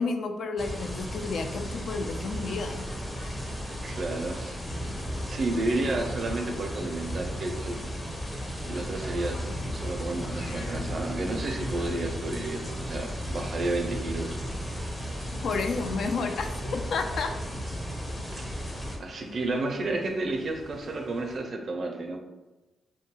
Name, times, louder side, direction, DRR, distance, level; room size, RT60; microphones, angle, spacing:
voice 1, 0.0-2.8 15.4-17.3, left 4 dB, 65° left, 5 dB, 0.3 m, -31 dB
sound 1, 0.6-19.0, equal, 35° left, 0.7 m, -35 dB
sound 2, 1.5-21.4, left 1 dB, 85° left, 0.8 m, -46 dB
voice 2, 3.8-4.5 5.3-7.8 8.6-9.4 9.7-14.3 18.3-18.6 19.0-22.2, right 2 dB, 55° right, 3 dB, 0.5 m, -31 dB
2.6 x 2.2 x 3.0 m, 1.1 s
hypercardioid pair, 45°, 0 cm